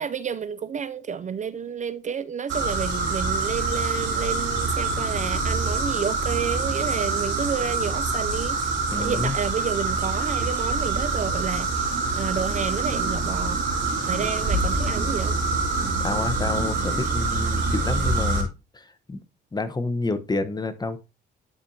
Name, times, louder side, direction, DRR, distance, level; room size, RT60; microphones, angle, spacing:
voice 1, 0.0-8.6 8.9-11.7 12.2-13.6 14.1-15.3, right 7 dB, 40° right, 0.4 m, -30 dB
sound 1, 2.5-18.4, right 3 dB, 70° right, 3.0 m, -25 dB
voice 2, 8.9-9.4 14.1-14.3 16.0-18.5 18.7-19.2 19.5-21.0, left 3 dB, 20° left, 1.0 m, -29 dB
12.0 x 4.5 x 2.7 m
cardioid pair, 90°, 20 cm